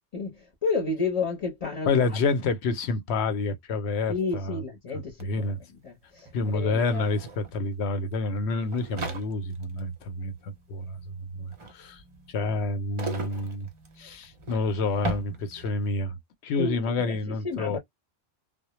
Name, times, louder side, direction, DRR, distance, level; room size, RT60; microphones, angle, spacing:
voice 1, 0.1-2.0 4.1-5.5 5.8-6.8 16.6-16.8 17.1-17.8, left 4 dB, 35° left, 0.7 m, -31 dB
voice 2, 1.9-4.6 5.2-5.6 6.3-11.0 11.3-12.0 12.3-13.7 14.0-16.2 16.4-17.8, left 3 dB, 80° left, 0.8 m, -28 dB
sound 1, 5.2-5.3 5.5-15.9, right 2 dB, 40° right, 0.4 m, -40 dB
2.1 x 2.0 x 2.9 m
omnidirectional pair, 1.1 m